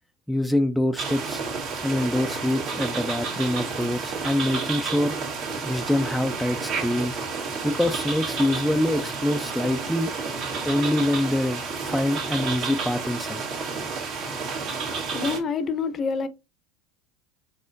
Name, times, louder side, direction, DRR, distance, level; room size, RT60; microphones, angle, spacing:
voice 1, 0.3-1.4 1.8-5.2 5.6-7.2 7.6-10.1 10.6-13.4, left 1 dB, ahead, 0.4 m, -25 dB
sound 1, 1.0-15.4, right 4 dB, 55° right, 1.6 m, -31 dB
voice 2, 14.9-16.3, left 5 dB, 40° left, 0.6 m, -27 dB
4.3 x 4.1 x 2.6 m
hypercardioid pair, 95°, 0 cm